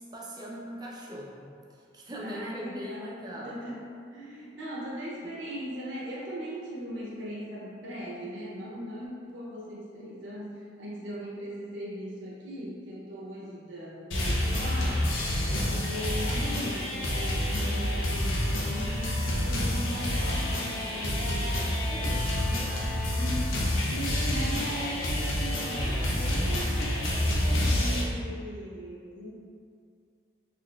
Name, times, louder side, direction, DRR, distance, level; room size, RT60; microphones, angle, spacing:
voice 1, 0.0-3.6 22.4-23.1, equal, 20° right, -3 dB, 0.5 m, -41 dB
voice 2, 2.2-22.3 23.1-23.4 23.9-29.3, equal, 70° right, -6 dB, 0.7 m, -39 dB
sound 1, 14.1-28.0, left 1 dB, 85° left, 0.6 m, -28 dB
3.9 x 2.9 x 2.3 m, 2.4 s
head